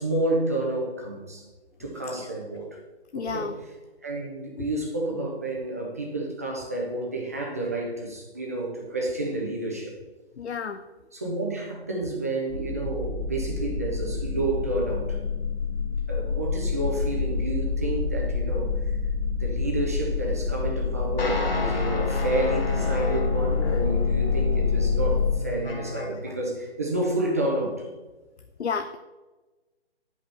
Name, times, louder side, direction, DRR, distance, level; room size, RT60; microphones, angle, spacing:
voice 1, 0.0-1.5 1.8-2.7 3.1-3.5 4.0-10.0 11.1-15.2 15.9-18.7 19.3-27.9, right 2 dB, 15° right, -1 dB, 0.6 m, -30 dB
voice 2, 3.1-3.5 4.6-4.7 10.4-10.8 23.6-23.8 28.6-29.0, left 5 dB, 75° left, 8 dB, 0.6 m, -31 dB
sound 1, 12.5-25.3, left 5 dB, 35° left, 1.8 m, -27 dB
sound 2, 21.2-26.3, left 1 dB, 55° left, 1.6 m, -32 dB
10.5 x 5.3 x 3.3 m, 1.2 s
figure-of-eight pair, 150°, 34 cm